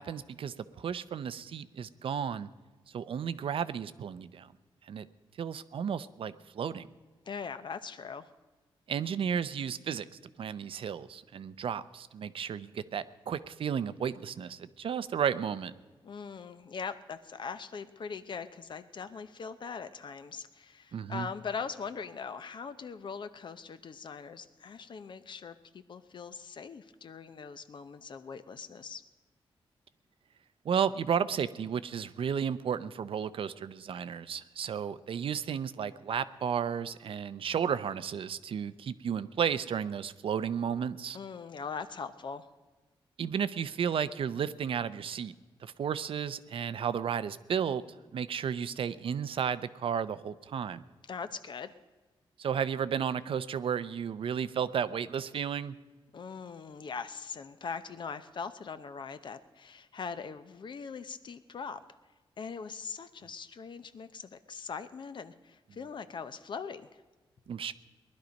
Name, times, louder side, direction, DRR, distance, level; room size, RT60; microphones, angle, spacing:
voice 1, 0.0-2.5 2.9-4.5 4.9-5.1 5.4-6.9 8.9-10.1 10.4-15.7 20.9-21.3 30.6-41.2 43.2-45.3 45.6-47.8 48.1-50.8 52.4-55.7 67.5-67.7, right 7 dB, 65° right, 14 dB, 0.6 m, -33 dB
voice 2, 7.3-8.3 16.0-29.0 41.1-42.5 51.1-51.7 56.1-61.8 62.4-67.0, left 5 dB, 55° left, 11 dB, 0.7 m, -41 dB
19.5 x 11.5 x 5.2 m, 1.3 s
wide cardioid pair, 115°, 10 cm